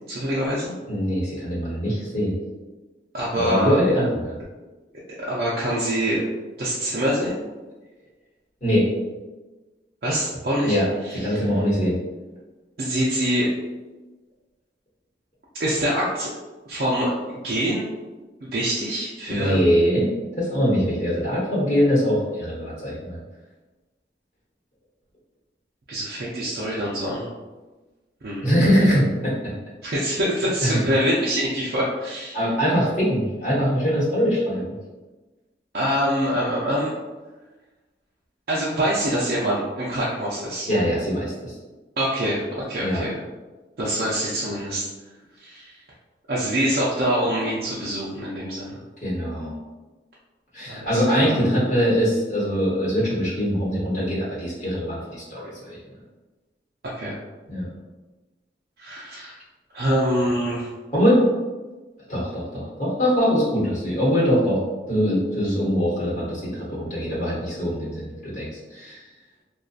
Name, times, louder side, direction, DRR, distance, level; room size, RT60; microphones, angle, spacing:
voice 1, 0.1-0.7 3.1-3.8 5.3-6.2 6.6-7.4 10.0-10.8 11.0-11.4 12.8-13.5 15.6-16.3 16.7-17.9 18.4-19.6 25.9-27.3 28.2-28.5 29.8-32.5 35.7-36.9 38.5-40.7 42.0-43.2 43.8-44.9 45.4-45.8 46.3-48.8 50.7-51.4 56.8-57.2 58.8-59.4 59.7-60.7, equal, 55° right, -7 dB, 0.4 m, -25 dB
voice 2, 0.9-2.3 3.3-4.4 8.6-8.9 10.6-10.9 11.1-12.0 19.3-20.1 20.4-23.2 28.4-29.3 30.6-30.8 32.3-34.7 40.7-41.5 42.8-43.1 49.0-49.5 50.5-55.8 57.5-57.7 60.9-61.2 62.1-64.6 64.9-69.0, equal, 45° left, -6 dB, 1.0 m, -22 dB
2.6 x 2.2 x 2.4 m, 1.2 s
head